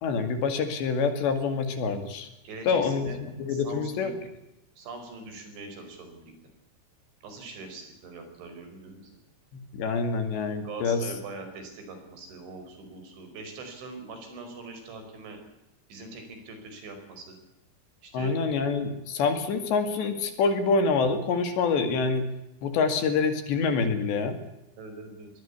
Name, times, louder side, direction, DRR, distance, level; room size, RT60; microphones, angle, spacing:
voice 1, 0.0-2.3 2.7-4.1 9.5-11.0 18.1-22.3 22.6-24.4, left 4 dB, 65° left, 8 dB, 4.3 m, -26 dB
voice 2, 2.4-3.2 3.5-4.1 4.8-6.3 7.2-9.1 10.6-15.4 15.9-17.4 18.0-18.4 24.8-25.3, right 3 dB, 70° right, 6 dB, 7.4 m, -42 dB
22.5 x 20.0 x 8.3 m, 0.90 s
omnidirectional pair, 5.7 m